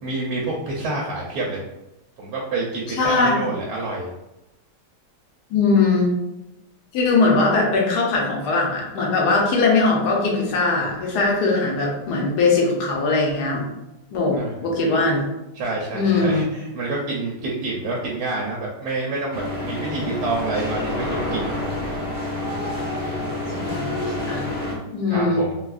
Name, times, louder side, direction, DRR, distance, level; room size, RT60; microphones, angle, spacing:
voice 1, 0.0-1.6 2.2-4.1 14.3-14.5 15.6-21.6 25.1-25.5, right 2 dB, 70° right, -3 dB, 1.1 m, -28 dB
voice 2, 3.0-3.5 5.5-6.1 6.9-13.6 14.1-15.2 15.9-16.5 23.6-24.4 24.9-25.4, left 3 dB, 70° left, -2 dB, 1.2 m, -20 dB
sound 1, 19.3-24.7, left 1 dB, 10° left, 0.5 m, -28 dB
3.5 x 2.3 x 2.3 m, 0.95 s
omnidirectional pair, 1.9 m